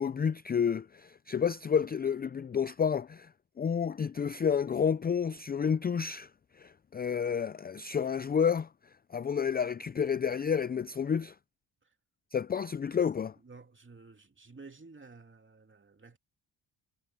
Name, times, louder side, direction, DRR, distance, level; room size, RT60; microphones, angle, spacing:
voice 1, 0.0-3.3 3.6-6.3 6.6-8.7 9.1-11.3 12.3-13.3, left 7 dB, 20° left, 0.4 m, -30 dB
voice 2, 13.4-16.2, right 4 dB, 25° right, 2.8 m, -52 dB
cardioid pair, 70°, 46 cm